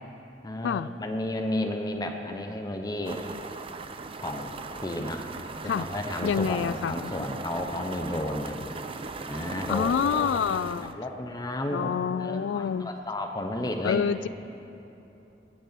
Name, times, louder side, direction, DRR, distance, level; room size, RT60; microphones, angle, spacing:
voice 1, 0.4-3.2 4.2-4.5 4.8-5.3 5.6-8.6 9.3-10.3 11.0-14.1, left 1 dB, 20° left, 4 dB, 0.7 m, -32 dB
sound 1, 3.0-10.9, right 3 dB, 30° right, 0.5 m, -38 dB
voice 2, 6.2-7.3 9.7-11.0 11.7-12.9 13.8-14.3, left 7 dB, 75° left, 18 dB, 0.3 m, -27 dB
17.5 x 7.5 x 6.8 m, 2.9 s
head